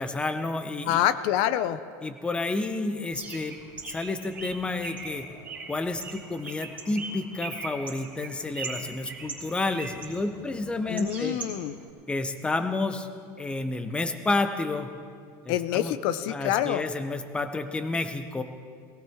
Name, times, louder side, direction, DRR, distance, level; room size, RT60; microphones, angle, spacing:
voice 1, 0.0-1.0 2.0-3.6 3.9-5.2 5.7-11.4 12.1-13.1 13.4-14.9 15.4-15.9 16.3-18.4, left 2 dB, 10° left, 8 dB, 0.8 m, -30 dB
voice 2, 0.9-1.8 10.9-11.7 15.5-16.8, left 12 dB, 60° left, 13 dB, 0.6 m, -26 dB
Bird, 3.1-11.9, right 4 dB, 15° right, 3.3 m, -40 dB
18.0 x 18.0 x 3.5 m, 2.1 s
cardioid pair, 155°, 9 cm